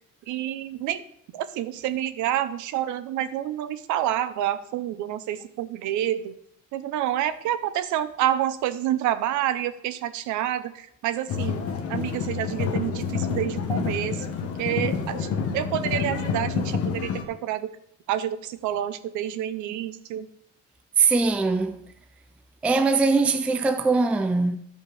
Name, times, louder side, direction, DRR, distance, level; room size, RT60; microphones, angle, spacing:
voice 1, 0.3-1.0 1.3-6.4 6.7-15.3 15.5-17.8 18.1-20.3, right 12 dB, 80° right, 0.8 m, -28 dB
sound 1, 11.3-17.2, left 6 dB, 50° left, 1.2 m, -28 dB
voice 2, 21.0-21.8 22.6-24.6, right 4 dB, 5° right, 0.3 m, -21 dB
12.5 x 5.4 x 4.8 m
cardioid pair, 170°, 29 cm